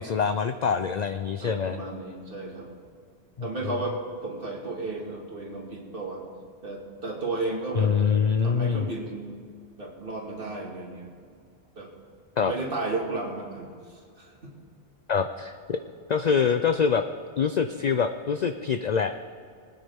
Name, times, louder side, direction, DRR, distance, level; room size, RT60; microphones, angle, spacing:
voice 1, 0.0-1.8 3.4-3.7 7.7-8.9 12.4-12.5 15.1-15.8 16.1-17.0 17.4-19.1, left 6 dB, 55° left, 8 dB, 0.5 m, -25 dB
voice 2, 1.4-2.7 3.4-6.2 6.6-8.0 8.4-9.2 9.8-11.1 11.8-11.9 12.4-14.5, right 2 dB, 55° right, -1 dB, 2.1 m, -33 dB
21.0 x 9.5 x 3.5 m, 2.3 s
omnidirectional pair, 1.1 m